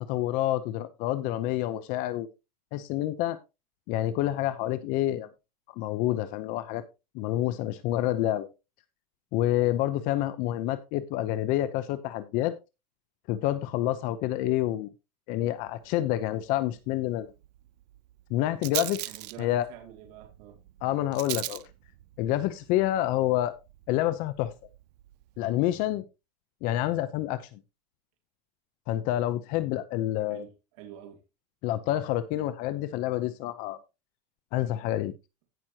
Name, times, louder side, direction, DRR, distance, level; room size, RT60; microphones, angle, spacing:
voice 1, 0.1-2.3 2.7-3.4 3.9-5.3 5.8-6.8 7.1-8.5 9.3-12.5 13.3-14.9 15.3-17.3 18.3-19.0 19.4-19.7 20.8-21.6 22.2-23.6 23.9-24.5 25.4-26.0 26.6-27.6 28.9-30.4 31.6-33.8 34.5-35.1, left 14 dB, 40° left, 0.8 m, -28 dB
Rattle, 15.6-25.5, right 17 dB, 75° right, 0.6 m, -42 dB
voice 2, 19.1-20.6 30.3-31.2, right 10 dB, 55° right, 2.8 m, -47 dB
17.0 x 6.1 x 2.9 m
supercardioid pair, 160°, 21 cm